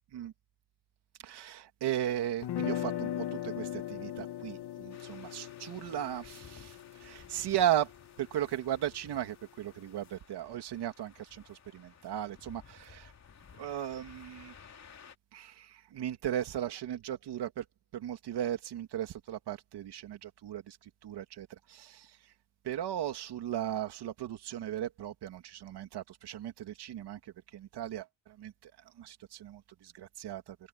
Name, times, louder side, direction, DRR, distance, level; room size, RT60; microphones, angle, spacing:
voice 1, 1.2-7.9 8.2-13.1 13.6-14.5 15.3-17.6 17.9-22.2 22.6-30.6, right 11 dB, 70° right, 2.8 m, -36 dB
sound 1, 2.4-8.4, left 11 dB, 70° left, 2.1 m, -39 dB
sound 2, 4.9-15.2, left 6 dB, 40° left, 2.8 m, -56 dB
cardioid pair, 120°, 41 cm